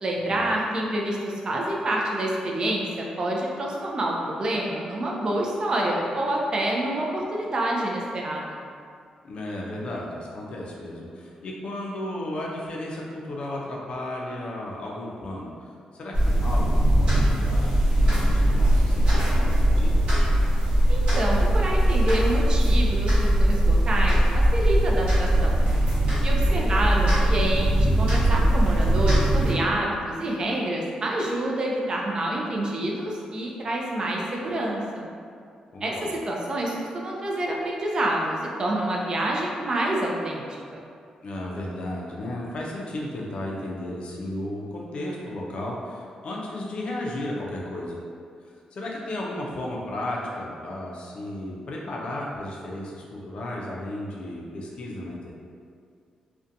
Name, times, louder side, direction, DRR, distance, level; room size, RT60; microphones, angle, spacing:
voice 1, 0.0-8.6 20.9-25.6 26.2-35.1 35.8-40.4 40.7-40.8, right 1 dB, 40° right, -2 dB, 0.4 m, -27 dB
voice 2, 9.2-15.7 15.9-17.8 18.0-20.0 26.5-26.8 35.7-36.1 41.2-48.0 48.7-55.3, left 1 dB, 55° left, -3 dB, 0.4 m, -34 dB
sound 1, 16.1-29.5, right 1 dB, 60° right, 1.2 m, -20 dB
2.5 x 2.1 x 2.6 m, 2.3 s
cardioid pair, 110°, 2 cm